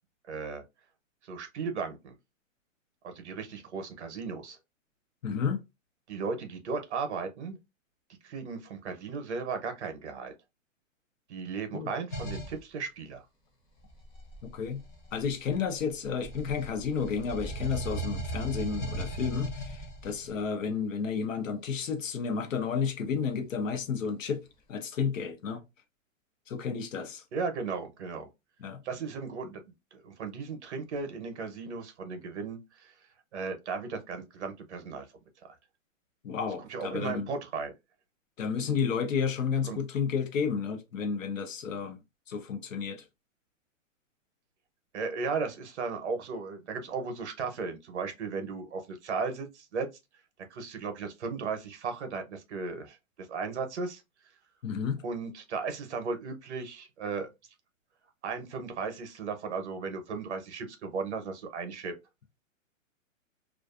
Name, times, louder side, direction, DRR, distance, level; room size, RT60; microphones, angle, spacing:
voice 1, 0.2-0.6 1.2-2.2 3.0-4.6 6.1-7.6 8.2-10.3 11.3-13.2 27.3-28.3 28.8-29.6 29.9-33.0 33.3-35.1 35.4-35.6 36.6-37.7 39.7-39.8 44.9-49.9 50.5-54.0 55.0-57.3 58.2-61.9, right 4 dB, 55° right, 0.7 m, -36 dB
voice 2, 5.2-5.6 11.7-11.9 14.4-14.8 15.1-25.6 26.5-27.2 28.6-28.8 36.2-37.3 38.4-42.0 42.3-43.0 54.6-55.0, left 6 dB, 70° left, 0.8 m, -31 dB
sound 1, 12.1-12.6 13.9-15.8 16.2-20.3, right 1 dB, 35° left, 0.7 m, -37 dB
2.4 x 2.4 x 2.3 m
hypercardioid pair, 175°, 40 cm